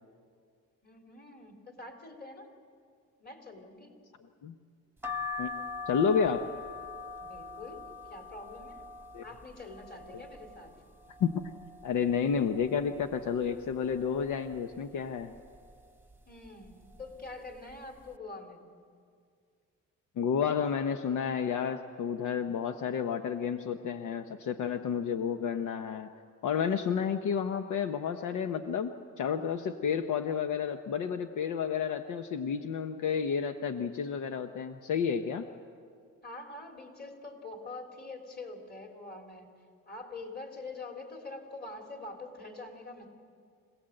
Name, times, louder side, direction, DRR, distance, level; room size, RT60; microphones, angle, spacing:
voice 1, 0.8-2.5 3.2-3.9 7.2-8.8 9.2-10.7 16.3-18.7 36.2-39.5 39.9-43.1, left 2 dB, 30° left, 2 dB, 4.2 m, -45 dB
sound 1, 5.0-10.7 11.2-11.9 12.3-12.4 12.6-13.7 14.2-14.6 15.3-15.7 16.5-16.7 17.0-17.2, left 4 dB, 5° right, 1.2 m, -42 dB
voice 2, 5.4-6.5 9.1-9.2 10.1-10.2 11.2-11.4 11.8-15.3 20.2-26.1 26.4-35.5, left 7 dB, 80° left, 7 dB, 1.0 m, -31 dB
26.0 x 17.5 x 7.8 m, 2.1 s
cardioid pair, 90°, 30 cm